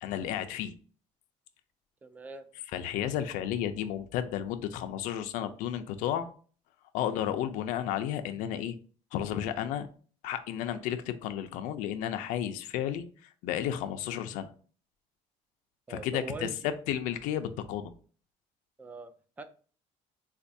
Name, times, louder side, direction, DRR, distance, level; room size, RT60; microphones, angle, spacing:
voice 1, 0.0-0.7 2.7-6.3 6.9-8.8 9.1-9.9 10.2-14.5 15.9-17.9, left 10 dB, 85° left, 9 dB, 0.5 m, -32 dB
voice 2, 2.0-2.5 15.9-16.6 18.8-19.1 19.4-19.5, right 3 dB, 10° right, 9 dB, 0.3 m, -41 dB
4.3 x 2.3 x 2.6 m, 0.40 s
cardioid pair, 170°, 13 cm